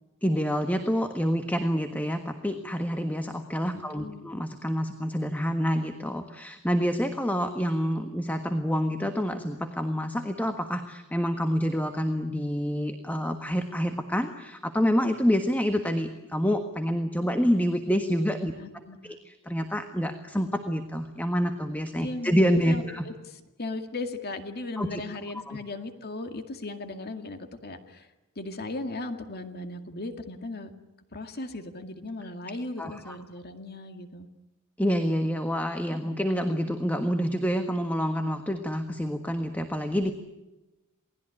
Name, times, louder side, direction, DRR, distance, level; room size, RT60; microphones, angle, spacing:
voice 1, 0.2-18.5 19.0-23.0 24.8-25.0 25.5-25.6 32.8-33.1 34.8-40.1, equal, 10° left, 7 dB, 1.5 m, -27 dB
voice 2, 3.7-4.2 18.6-19.2 22.0-30.7 31.1-34.3, left 2 dB, 45° left, 7 dB, 2.1 m, -37 dB
28.0 x 19.5 x 9.9 m, 1.0 s
head